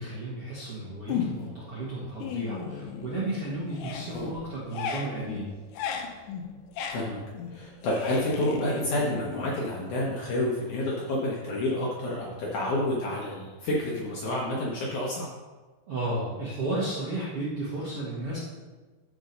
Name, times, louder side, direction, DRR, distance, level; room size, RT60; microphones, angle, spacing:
voice 1, 0.0-5.5 15.9-18.4, right 2 dB, 55° right, -7 dB, 1.7 m, -33 dB
sound 1, 1.1-1.6 2.0-3.4 3.7-10.2, left 7 dB, 90° left, 1.8 m, -36 dB
voice 2, 7.5-15.3, left 1 dB, 70° left, -3 dB, 2.0 m, -29 dB
12.0 x 4.6 x 5.2 m, 1.3 s
omnidirectional pair, 4.8 m